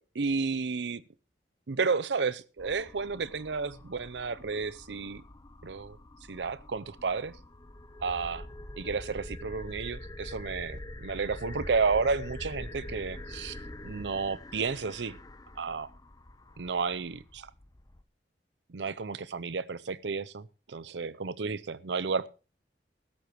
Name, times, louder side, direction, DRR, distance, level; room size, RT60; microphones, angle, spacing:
voice 1, 0.1-1.0 1.7-5.2 5.6-6.0 6.3-7.4 8.0-8.5 8.8-13.6 13.8-15.2 15.6-15.9 16.6-17.5 18.7-22.3, right 4 dB, 85° right, 0.7 m, -32 dB
sound 1, 2.6-18.0, left 1 dB, 20° left, 0.8 m, -45 dB
16.0 x 13.0 x 3.1 m
head